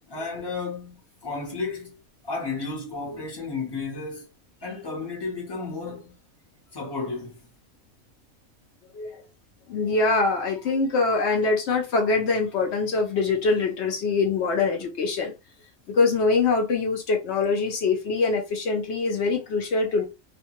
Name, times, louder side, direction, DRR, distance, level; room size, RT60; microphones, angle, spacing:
voice 1, 0.1-2.0 2.2-4.3 4.6-6.2 6.7-7.4, left 4 dB, 25° left, 0.6 m, -33 dB
voice 2, 9.7-15.3 15.9-20.0, left 4 dB, 65° left, 0.7 m, -24 dB
2.4 x 2.2 x 2.9 m
omnidirectional pair, 1.5 m